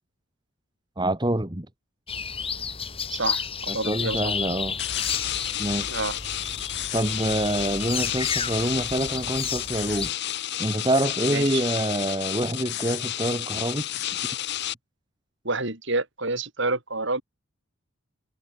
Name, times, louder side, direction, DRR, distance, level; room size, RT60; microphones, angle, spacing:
voice 1, 1.0-1.7 3.7-4.8 5.6-5.9 6.9-10.1 10.6-13.9, right 1 dB, 20° right, 1.6 m, -26 dB
sound 1, 2.1-10.1, left 6 dB, 25° left, 4.8 m, -32 dB
voice 2, 3.1-4.3 5.9-6.2 11.3-11.6 15.4-17.2, right 3 dB, 55° right, 3.6 m, -28 dB
sound 2, 4.8-14.7, left 12 dB, 50° left, 0.8 m, -31 dB
head